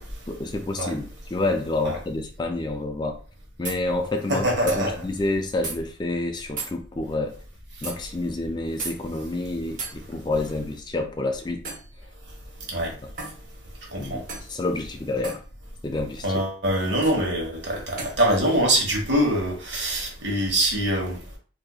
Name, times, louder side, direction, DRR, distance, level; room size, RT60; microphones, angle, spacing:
voice 1, 0.3-3.2 3.6-7.4 7.8-11.6 14.0-15.4 15.8-16.4, left 2 dB, 25° left, 0.3 m, -28 dB
sound 1, 3.6-3.8 4.7-4.8 5.6-5.8 6.6-6.8 7.8-8.0 8.8-9.0 9.8-10.0 11.6-11.9 13.2-13.4 14.3-14.5 15.2-15.4 17.0-17.2 18.0-18.2, right 4 dB, 45° right, 1.0 m, -34 dB
voice 2, 4.3-4.9 12.7-12.9 13.9-14.2 16.2-21.2, right 1 dB, 65° right, 1.4 m, -24 dB
4.1 x 2.7 x 2.4 m
head